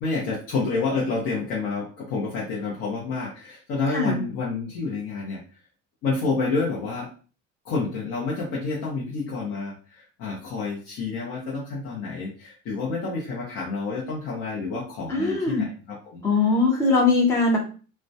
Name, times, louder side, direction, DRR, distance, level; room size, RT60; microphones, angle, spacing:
voice 1, 0.0-5.4 6.0-7.1 7.6-16.2, left 4 dB, 50° left, -5 dB, 0.7 m, -29 dB
voice 2, 15.1-15.7 16.2-17.6, left 3 dB, 10° left, -1 dB, 0.4 m, -21 dB
2.2 x 2.1 x 2.6 m, 0.38 s
cardioid pair, 175°, 31 cm